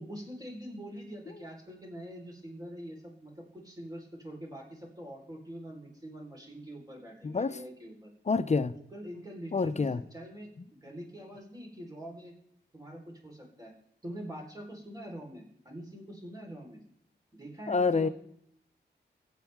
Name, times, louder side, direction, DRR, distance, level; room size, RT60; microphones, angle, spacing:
voice 1, 0.0-8.1 8.7-9.9 10.1-10.5 10.8-12.3 12.7-13.7 14.0-16.8 17.3-18.1, equal, 20° right, -1 dB, 4.1 m, -44 dB
voice 2, 7.2-7.6 8.3-8.7 9.5-10.0 17.7-18.1, left 4 dB, 40° left, 14 dB, 0.5 m, -27 dB
22.5 x 8.1 x 3.6 m, 0.73 s
wide cardioid pair, 70°, 19 cm